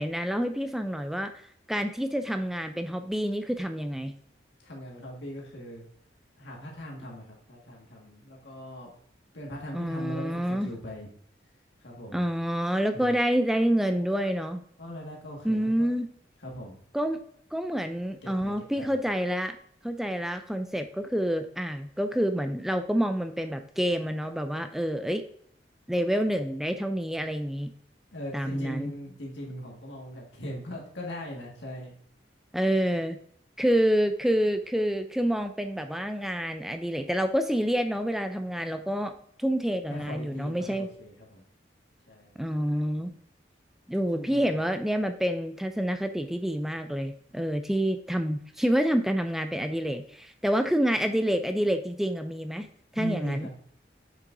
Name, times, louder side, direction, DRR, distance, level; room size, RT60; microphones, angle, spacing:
voice 1, 0.0-1.3 1.7-4.1 9.7-10.7 12.1-14.6 15.4-16.1 16.9-17.2 17.5-19.6 19.8-25.2 25.9-27.7 28.3-28.9 32.5-33.2 33.6-40.9 42.4-43.1 43.9-52.7 52.9-53.5, equal, ahead, 7 dB, 0.3 m, -28 dB
voice 2, 4.6-5.9 6.4-8.9 9.3-11.1 11.8-12.2 12.9-13.2 14.8-15.9 16.4-16.8 18.2-19.0 28.1-31.9 39.9-41.4 42.1-42.4 44.1-44.7 52.9-53.5, equal, 80° left, -2 dB, 1.7 m, -40 dB
7.5 x 6.7 x 2.6 m, 0.65 s
head